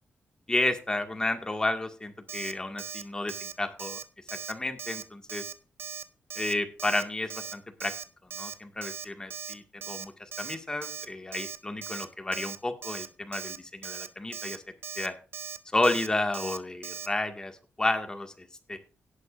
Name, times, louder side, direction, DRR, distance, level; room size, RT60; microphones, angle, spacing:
voice 1, 0.5-4.0 4.3-5.5 6.4-7.9 8.4-10.1 10.4-14.6 15.0-15.1 15.7-18.8, left 2 dB, 20° left, 5 dB, 2.0 m, -31 dB
Alarm, 2.3-2.5 2.8-3.0 3.3-3.5 3.8-4.0 4.3-4.5 4.8-5.0 5.3-5.5 5.8-6.0 6.3-6.5 6.8-7.0 7.3-7.5 7.8-8.0 8.3-8.5 8.8-9.0 9.3-9.5 9.8-10.0 10.3-10.6 10.8-11.1 11.3-11.6 11.8-12.1 12.3-12.6 12.8-13.1 13.3-13.6 13.8-14.1 14.3-14.6 14.8-15.1 15.3-15.6 15.8-16.1 16.3-16.6 16.8-17.1, right 7 dB, 70° right, 1.0 m, -38 dB
17.5 x 8.3 x 2.6 m, 0.35 s
cardioid pair, 100°, 4 cm